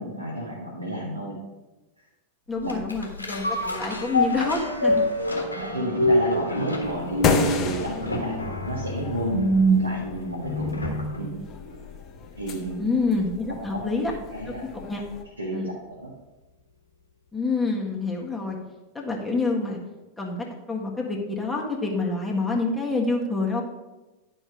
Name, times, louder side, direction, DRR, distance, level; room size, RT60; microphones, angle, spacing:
voice 1, 0.0-1.4 2.6-2.7 5.6-8.4 8.6-10.8 11.1-11.3 12.4-12.9 13.7-14.0 14.3-14.6 15.4-16.1, right 1 dB, 85° right, -4 dB, 1.6 m, -31 dB
voice 2, 2.5-5.0 5.3-5.4 12.8-14.1 14.9-15.0 15.5-15.7 17.3-18.6 18.9-19.8 20.2-23.6, left 3 dB, 10° left, -2 dB, 1.6 m, -27 dB
sound 1, 2.7-11.3 11.7-11.8, equal, 85° left, 1.6 m, -25 dB
sound 2, 6.8-15.2, left 4 dB, 30° left, 1.2 m, -32 dB
10.5 x 5.4 x 5.1 m, 1.1 s
figure-of-eight pair, 90°, 0 cm